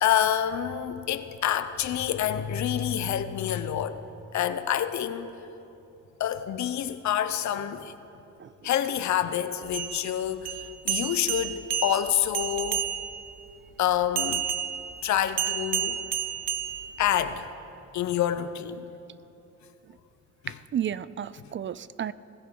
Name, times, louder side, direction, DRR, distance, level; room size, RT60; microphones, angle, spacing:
voice 1, 0.0-4.0 4.3-5.3 6.2-7.9 8.6-12.8 13.8-14.5 15.0-16.0 17.0-17.5 17.9-18.9, left 10 dB, 70° left, 0.9 m, -27 dB
sound 1, 9.6-13.3 14.2-17.3, right 9 dB, 55° right, 0.9 m, -31 dB
voice 2, 20.5-22.1, right 9 dB, 40° right, 0.4 m, -32 dB
21.0 x 15.5 x 3.9 m
cardioid pair, 90°, 30 cm